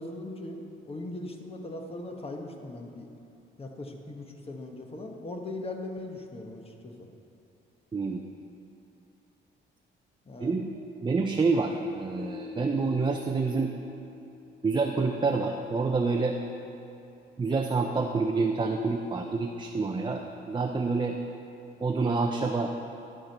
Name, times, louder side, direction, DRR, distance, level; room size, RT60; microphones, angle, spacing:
voice 1, 0.0-3.1 3.6-7.1 10.3-10.5, left 2 dB, 30° left, 3 dB, 1.2 m, -39 dB
voice 2, 11.0-13.7 14.6-16.4 17.4-21.2 21.8-22.7, right 4 dB, 25° right, 3 dB, 0.5 m, -27 dB
sound 1, 12.2-15.4, left 6 dB, 80° left, 2.2 m, -45 dB
12.5 x 4.5 x 6.6 m, 2.8 s
cardioid pair, 90°, 20 cm